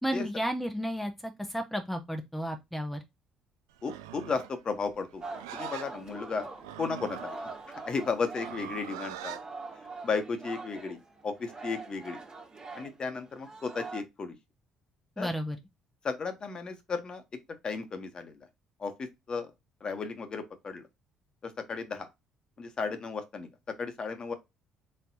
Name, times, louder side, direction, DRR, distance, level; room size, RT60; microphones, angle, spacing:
voice 1, 0.0-3.0 15.2-15.6, equal, ahead, 0.7 m, -33 dB
voice 2, 3.8-5.2 5.5-6.5 6.8-7.4 7.9-9.4 10.0-12.2 12.7-14.3 15.2-15.3 16.0-17.2 17.6-18.3 18.8-18.9 19.3-19.5 19.8-20.8 21.4-22.1 22.6-23.5 23.8-24.3, left 4 dB, 40° left, 1.1 m, -34 dB
Livestock farm animals working animals, 3.8-9.5, right 12 dB, 75° right, 0.3 m, -43 dB
Singing, 5.2-8.8 9.1-14.0, right 3 dB, 35° right, 1.4 m, -43 dB
4.3 x 3.3 x 2.7 m
figure-of-eight pair, 50°, 2 cm